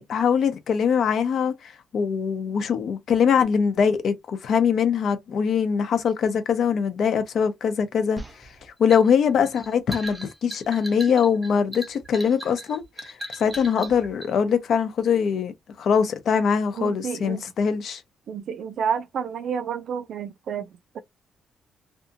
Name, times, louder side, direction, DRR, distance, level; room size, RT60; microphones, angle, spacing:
voice 1, 0.0-8.5 8.8-15.5 15.8-18.0, left 7 dB, 55° left, 0.6 m, -22 dB
sound 1, 8.2-14.3, right 1 dB, 10° right, 0.7 m, -38 dB
voice 2, 16.8-17.4 18.3-20.7 20.9-21.0, right 7 dB, 55° right, 0.4 m, -29 dB
2.7 x 2.3 x 2.6 m
cardioid pair, 150°, 0 cm